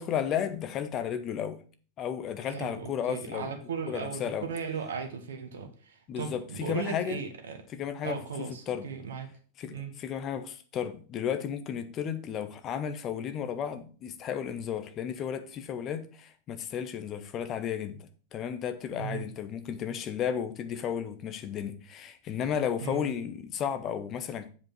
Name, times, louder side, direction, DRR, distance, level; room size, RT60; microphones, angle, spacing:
voice 1, 0.0-1.6 2.0-3.5 3.9-4.5 6.1-7.2 7.7-8.9 9.6-24.5, left 8 dB, 30° left, 1.1 m, -33 dB
voice 2, 2.4-7.6 8.0-9.3 9.7-9.9 18.9-19.2 22.8-23.0, right 5 dB, 65° right, 1.5 m, -37 dB
7.6 x 5.2 x 5.8 m
figure-of-eight pair, 90°, 0 cm